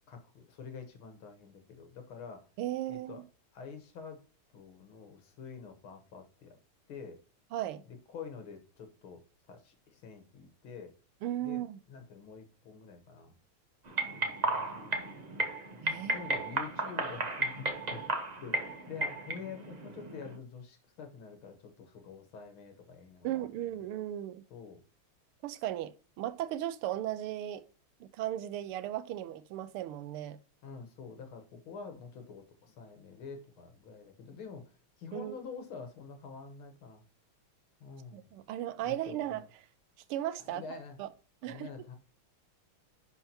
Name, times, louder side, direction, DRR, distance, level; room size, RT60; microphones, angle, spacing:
voice 1, 0.1-2.5 2.9-3.2 3.5-4.2 4.5-6.6 6.9-7.2 7.9-9.2 9.5-10.9 11.4-11.6 11.9-13.3 14.1-15.0 15.9-18.0 18.4-23.4 24.5-24.8 30.6-34.7 35.0-37.0 37.8-38.3 38.8-39.4 40.4-41.0 41.5-42.0, left 5 dB, 70° left, 2.0 m, -47 dB
voice 2, 2.6-3.2 7.5-7.8 11.2-11.8 15.8-16.1 23.2-24.4 25.4-27.6 28.0-30.4 35.1-35.4 38.1-39.4 40.1-40.6 41.0-41.1 41.4-41.7, right 12 dB, 90° right, 1.5 m, -36 dB
sound 1, 13.9-20.4, right 2 dB, 40° right, 0.5 m, -34 dB
10.5 x 4.6 x 2.9 m
omnidirectional pair, 2.4 m